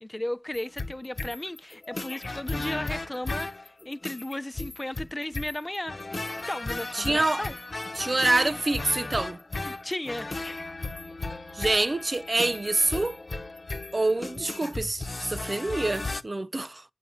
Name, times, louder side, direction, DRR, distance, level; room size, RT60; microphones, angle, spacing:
voice 1, 0.0-6.0 6.5-7.5 9.6-10.3, left 1 dB, 30° left, 0.6 m, -35 dB
sound 1, 0.5-16.2, left 2 dB, 70° left, 0.9 m, -35 dB
voice 2, 6.9-7.4 8.0-9.4 11.5-13.2 13.9-16.8, right 2 dB, 55° right, 0.6 m, -26 dB
9.5 x 6.0 x 8.0 m
wide cardioid pair, 40°, 0 cm